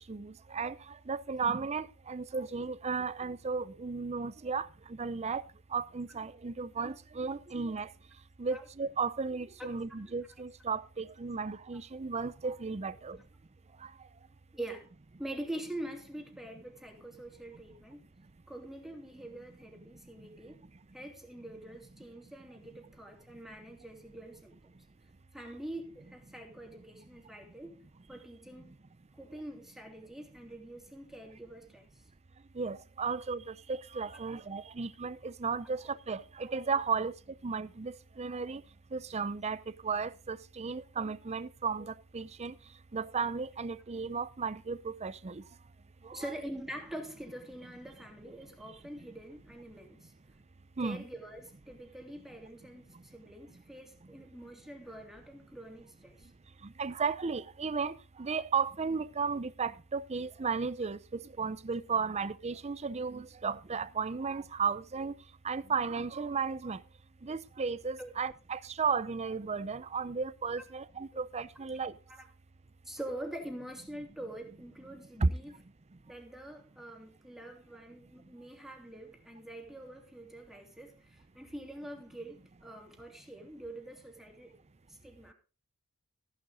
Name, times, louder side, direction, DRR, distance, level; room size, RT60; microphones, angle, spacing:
voice 1, 0.1-0.8 1.1-4.7 5.0-5.4 5.7-7.9 8.4-13.2 32.6-37.1 37.4-38.6 38.9-42.5 42.9-45.4 46.0-46.2 50.8-51.0 56.8-65.1 65.4-66.8 67.2-71.9 75.2-75.3, right 5 dB, 30° right, 0.6 m, -34 dB
voice 2, 12.8-13.2 14.5-14.9 15.2-18.1 18.5-20.7 20.9-24.8 25.3-27.8 28.1-28.7 29.2-32.0 46.1-50.1 50.8-56.3 68.0-68.1 72.1-72.3 72.8-75.6 76.1-84.5 84.9-85.3, right 1 dB, ahead, 3.1 m, -45 dB
14.5 x 11.0 x 4.0 m
head